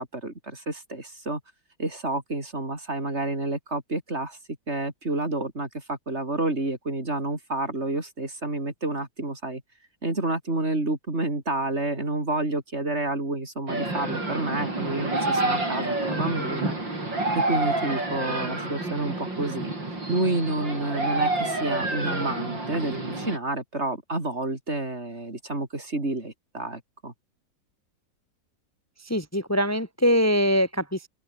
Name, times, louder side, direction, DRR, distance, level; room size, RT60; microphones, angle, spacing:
voice 1, 0.0-1.4 1.8-4.4 4.7-9.6 10.0-16.8 17.3-19.7 20.1-27.1, right 2 dB, 35° right, 4.5 m, -29 dB
sound 1, 13.7-23.4, right 2 dB, 85° right, 9.0 m, -28 dB
voice 2, 29.1-31.1, equal, 10° left, 2.4 m, -23 dB
omnidirectional pair, 2.0 m